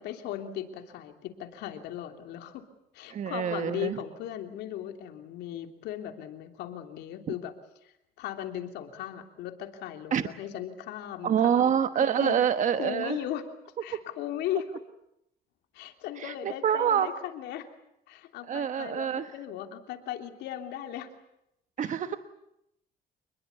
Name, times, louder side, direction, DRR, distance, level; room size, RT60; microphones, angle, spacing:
voice 1, 0.0-2.6 2.9-7.5 7.8-12.4 12.7-13.4 13.8-14.8 15.7-17.7 18.1-21.1 21.8-22.2, left 11 dB, 85° left, 6 dB, 3.2 m, -37 dB
voice 2, 3.1-4.0 10.1-10.3 11.2-13.2 16.2-17.1 18.5-19.3 21.8-22.2, right 8 dB, 45° right, 10 dB, 1.2 m, -26 dB
27.5 x 21.0 x 8.4 m, 0.81 s
cardioid pair, 110°, 17 cm